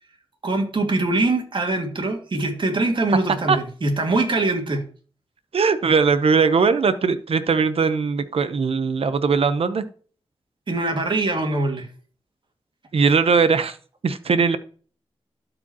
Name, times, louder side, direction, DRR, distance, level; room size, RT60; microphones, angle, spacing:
voice 1, 0.4-4.8 10.7-11.9, right 2 dB, 50° right, 3 dB, 2.2 m, -23 dB
voice 2, 5.5-9.8 12.9-13.8 14.0-14.6, right 5 dB, 70° right, 11 dB, 0.9 m, -19 dB
12.0 x 5.0 x 3.0 m, 0.41 s
wide cardioid pair, 85°, 10 cm